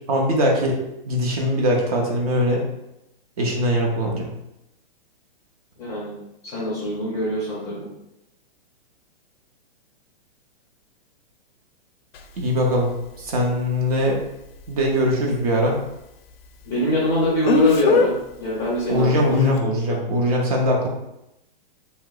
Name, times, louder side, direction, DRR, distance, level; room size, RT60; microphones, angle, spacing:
voice 1, 0.1-0.8 1.1-2.6 3.4-4.3 12.4-12.9 13.2-14.2 14.7-15.8 18.9-20.9, equal, 40° right, 0 dB, 0.6 m, -21 dB
voice 2, 5.8-6.1 6.4-7.9 16.6-19.1 19.4-20.0, equal, 10° left, -7 dB, 0.5 m, -24 dB
Speech, 12.1-12.2 17.4-18.1 19.3-19.6, left 5 dB, 75° left, 0.5 m, -18 dB
2.8 x 2.1 x 3.8 m, 0.87 s
hypercardioid pair, 165°, 30 cm